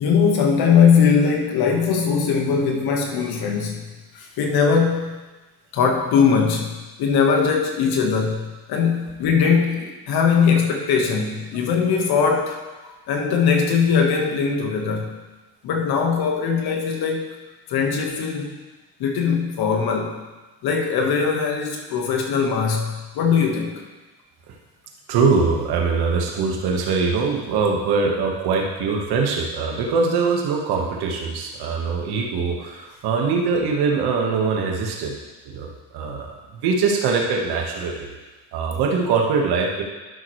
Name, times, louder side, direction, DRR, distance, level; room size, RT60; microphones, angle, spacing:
voice 1, 0.0-3.8 4.1-5.2 5.7-12.6 13.1-15.2 15.6-17.4 17.7-18.5 19.0-20.2 20.6-23.8, left 6 dB, 70° left, 2 dB, 1.6 m, -20 dB
voice 2, 25.1-35.1 35.5-38.1 38.5-39.8, right 4 dB, 75° right, 0 dB, 1.6 m, -22 dB
12.0 x 6.1 x 3.3 m, 1.2 s
supercardioid pair, 85°, 38 cm